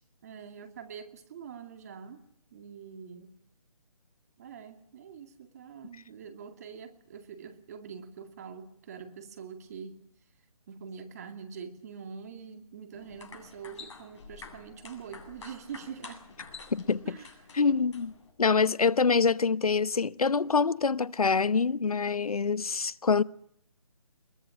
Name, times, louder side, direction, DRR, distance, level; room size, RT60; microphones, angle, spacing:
voice 1, 0.2-2.2 2.5-3.3 4.4-10.0 10.7-16.2 17.0-17.3, right 7 dB, 25° right, 2.3 m, -44 dB
sound 1, 12.9-18.3, left 5 dB, 50° left, 7.9 m, -48 dB
voice 2, 16.7-17.2 17.5-18.1 18.4-23.2, left 5 dB, 85° left, 1.0 m, -25 dB
22.0 x 21.5 x 8.8 m
hypercardioid pair, 170°, 18 cm